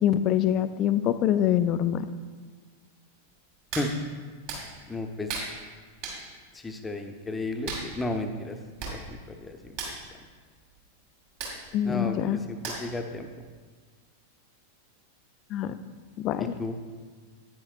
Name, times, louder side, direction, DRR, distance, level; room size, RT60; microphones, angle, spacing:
voice 1, 0.0-2.0 11.7-12.4 15.5-15.8 16.2-16.5, left 10 dB, 35° left, 12 dB, 0.4 m, -24 dB
Hands, 3.7-3.9 4.5-4.6 5.3-5.5 6.0-6.2 7.7-7.9 8.5-8.6 8.8-9.0 9.2-9.4 9.7-9.9 11.4-11.6 12.6-13.0 13.4-13.5, right 4 dB, 50° right, 2.4 m, -34 dB
voice 2, 4.9-5.4 6.5-8.6 8.8-9.8 11.8-13.3 16.4-16.8, left 2 dB, 10° left, 6 dB, 0.7 m, -33 dB
9.9 x 9.3 x 2.5 m, 1.5 s
figure-of-eight pair, 90°, 0 cm